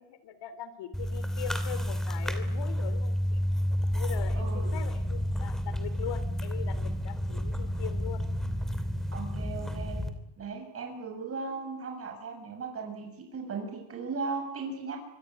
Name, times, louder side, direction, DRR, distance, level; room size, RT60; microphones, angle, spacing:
voice 1, 0.0-3.4 3.9-8.2, left 10 dB, 65° left, 13 dB, 3.4 m, -41 dB
sound 1, 0.9-10.1, equal, ahead, 2.8 m, -30 dB
voice 2, 4.4-4.7 9.1-10.0 10.4-15.0, right 4 dB, 30° right, 2 dB, 7.2 m, -37 dB
25.5 x 23.5 x 9.7 m, 0.81 s
cardioid pair, 175°, 45 cm